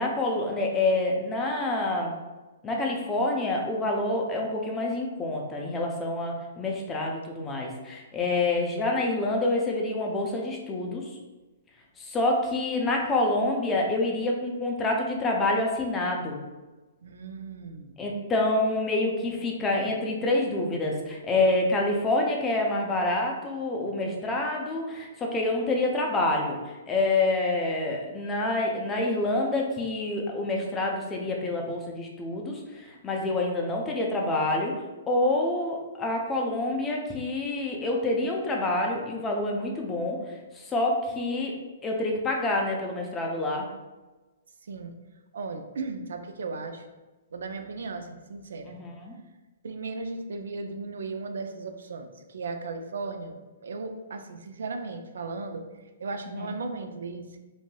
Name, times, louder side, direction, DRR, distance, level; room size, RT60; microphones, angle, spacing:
voice 1, 0.0-2.1 2.6-11.1 12.0-16.4 18.0-26.6 26.9-34.7 35.1-41.5 41.8-43.7 48.7-49.2 56.3-56.5, left 2 dB, 15° left, 0 dB, 0.5 m, -27 dB
voice 2, 17.0-17.9 44.7-44.9 45.3-46.8 47.3-48.7 49.6-53.4 53.6-55.6 56.0-57.4, right 3 dB, 80° right, 6 dB, 0.3 m, -36 dB
3.1 x 2.6 x 2.2 m, 1.2 s
hypercardioid pair, 150°, 0 cm